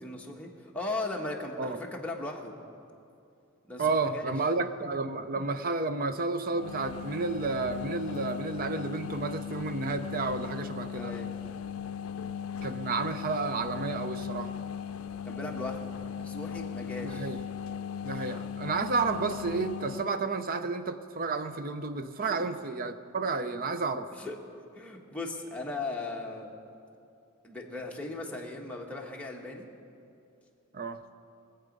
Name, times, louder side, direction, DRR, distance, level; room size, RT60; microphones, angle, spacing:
voice 1, 0.0-2.5 3.7-4.3 10.9-11.4 15.1-17.4 18.1-18.3 22.2-22.4 24.1-24.4 24.7-26.5 27.4-29.7, left 2 dB, 5° left, -1 dB, 1.3 m, -38 dB
voice 2, 3.8-11.1 12.6-14.5 17.0-17.4 18.0-24.1 30.7-31.0, right 4 dB, 45° right, 10 dB, 0.6 m, -31 dB
sound 1, 6.5-20.1, left 7 dB, 80° left, 0.4 m, -38 dB
22.5 x 8.1 x 5.3 m, 2.7 s
head